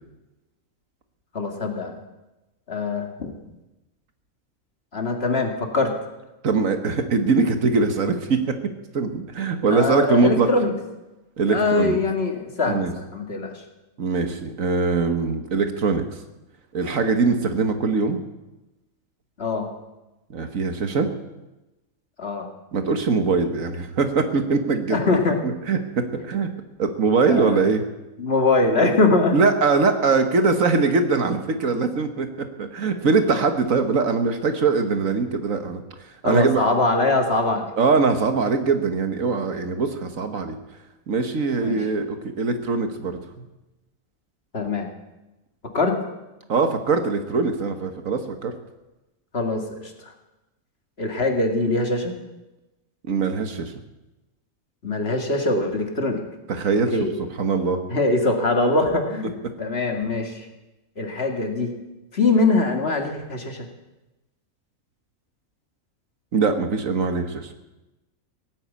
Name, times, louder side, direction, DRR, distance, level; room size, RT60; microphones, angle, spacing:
voice 1, 1.3-2.0 2.7-3.3 4.9-5.9 9.7-10.7 11.5-13.6 19.4-19.7 22.2-22.5 24.9-25.4 27.3-27.7 28.2-29.4 36.2-37.7 41.6-41.8 44.5-44.9 45.7-46.0 49.3-50.1 51.0-52.1 54.8-56.2 56.9-57.1 57.9-59.3 59.6-60.5 61.0-61.7 62.1-63.7, left 3 dB, 45° left, 3 dB, 2.2 m, -22 dB
voice 2, 6.4-8.5 8.9-10.5 11.4-12.0 12.7-12.9 14.0-16.0 16.7-18.2 20.3-21.1 22.7-26.5 26.8-27.9 29.3-35.8 36.2-36.6 37.8-40.6 41.1-43.5 46.5-48.5 53.1-53.7 56.5-56.9 57.4-57.8 66.3-67.5, right 4 dB, 70° right, 7 dB, 1.8 m, -22 dB
17.5 x 9.6 x 8.4 m, 1.0 s
omnidirectional pair, 1.4 m